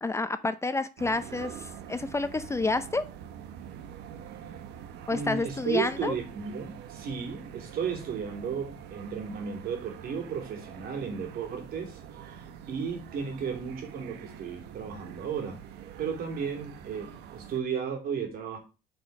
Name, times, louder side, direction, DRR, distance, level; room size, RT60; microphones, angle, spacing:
voice 1, 0.0-3.0 5.1-6.1, left 3 dB, 15° left, 0.6 m, -29 dB
sound 1, 1.0-17.6, right 9 dB, 80° right, 1.1 m, -45 dB
voice 2, 5.1-15.6 16.0-18.6, right 6 dB, 60° right, 3.1 m, -34 dB
8.5 x 5.3 x 4.7 m
cardioid pair, 110°, 17 cm